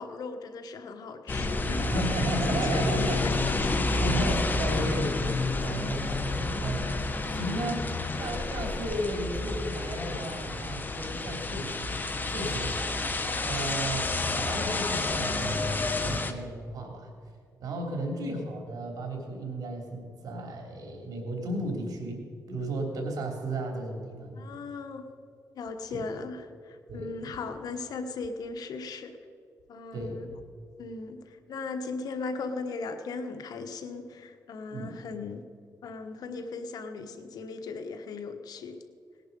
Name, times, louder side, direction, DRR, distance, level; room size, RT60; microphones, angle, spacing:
voice 1, 0.0-4.1 4.7-4.8 17.9-18.1 24.3-25.1 25.5-29.2 29.7-30.3 30.8-35.4 35.8-38.8, left 4 dB, 75° left, 8 dB, 1.3 m, -38 dB
sound 1, 1.3-16.3, left 2 dB, 30° left, 1.2 m, -29 dB
voice 2, 1.8-3.2 4.0-5.1 5.6-7.0 7.3-7.9 8.2-12.9 13.4-17.1 17.6-24.4 25.9-26.0 26.9-27.4 29.9-30.4 34.7-35.0, right 1 dB, 70° right, 2 dB, 3.3 m, -34 dB
18.5 x 10.5 x 5.4 m, 2.2 s
cardioid pair, 90°, 7 cm